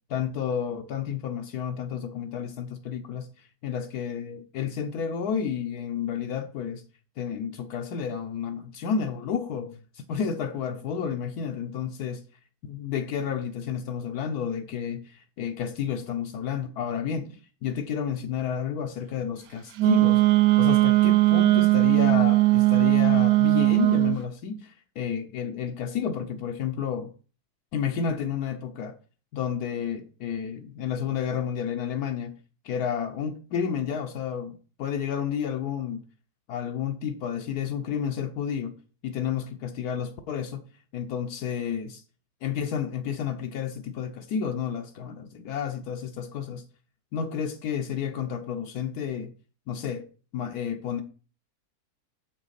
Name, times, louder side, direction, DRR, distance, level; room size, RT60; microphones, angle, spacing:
voice 1, 0.1-6.8 7.2-12.2 12.7-20.2 20.6-27.1 27.7-29.0 29.3-32.4 32.6-36.0 36.5-38.8 39.0-40.6 40.9-42.0 42.4-46.6 47.1-49.3 49.7-50.1 50.3-51.0, left 7 dB, 80° left, 1.2 m, -31 dB
Wind instrument woodwind instrument, 19.8-24.2, right 18 dB, 75° right, 1.0 m, -19 dB
7.3 x 6.1 x 4.1 m
omnidirectional pair, 1.6 m